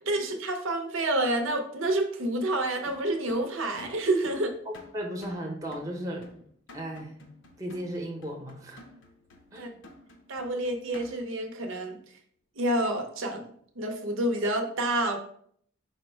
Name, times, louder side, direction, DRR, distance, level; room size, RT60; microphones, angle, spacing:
voice 1, 0.0-4.5 9.5-9.7 10.3-12.0 12.6-13.4 13.8-15.2, right 1 dB, 80° right, 4 dB, 0.7 m, -28 dB
sound 1, 2.8-11.4, left 2 dB, 70° left, 0.6 m, -52 dB
voice 2, 4.9-6.3 6.7-7.1 7.6-8.8 9.5-9.7, equal, 15° right, 0 dB, 0.7 m, -35 dB
5.0 x 2.1 x 4.3 m, 0.62 s
head